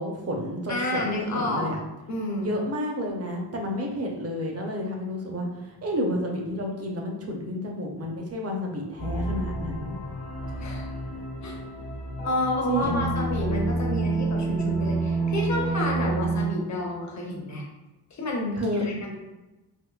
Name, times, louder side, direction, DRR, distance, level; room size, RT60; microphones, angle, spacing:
voice 1, 0.0-1.8 2.4-10.0 12.7-13.1 18.6-18.8, equal, 35° right, 0 dB, 0.6 m, -30 dB
voice 2, 0.7-1.7 2.1-2.5 10.6-10.9 11.4-11.6 12.2-17.6 18.1-19.2, left 1 dB, 40° left, -1 dB, 0.7 m, -29 dB
sound 1, 9.0-16.5, right 3 dB, 80° left, 1.0 m, -29 dB
3.5 x 3.0 x 2.3 m, 1.1 s
wide cardioid pair, 155°, 42 cm